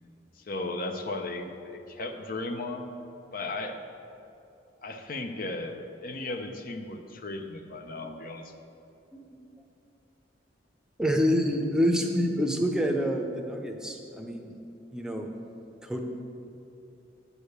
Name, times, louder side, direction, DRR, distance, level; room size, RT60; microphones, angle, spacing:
voice 1, 0.4-2.9 3.3-3.8 4.8-8.5, left 2 dB, 50° left, 6 dB, 0.7 m, -36 dB
voice 2, 11.0-14.5 14.9-15.3 15.8-16.0, equal, 5° right, 2 dB, 0.7 m, -27 dB
9.5 x 5.1 x 6.6 m, 2.8 s
head